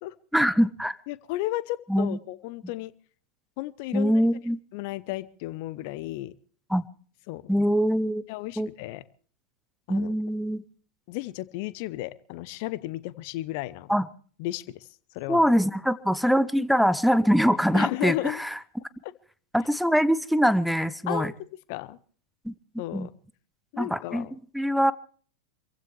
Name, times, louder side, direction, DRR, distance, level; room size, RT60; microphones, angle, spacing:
voice 1, 0.3-1.0 1.9-2.2 3.9-4.6 6.7-6.8 7.5-8.2 8.6-8.7 9.9-10.6 13.9-14.1 15.3-18.5 19.5-21.3 22.4-22.5 22.9-23.1 23.8-24.9, equal, ahead, 17 dB, 0.7 m, -23 dB
voice 2, 1.1-2.9 3.6-4.2 4.7-6.3 7.3-7.6 8.3-9.0 9.9-10.1 11.1-13.9 14.4-14.9 15.1-15.4 17.7-18.4 19.0-19.1 21.1-21.3 21.7-22.0 22.8-23.1 23.7-24.3, left 17 dB, 45° left, 18 dB, 0.9 m, -34 dB
26.5 x 15.5 x 3.3 m, 0.43 s
figure-of-eight pair, 90°, 0 cm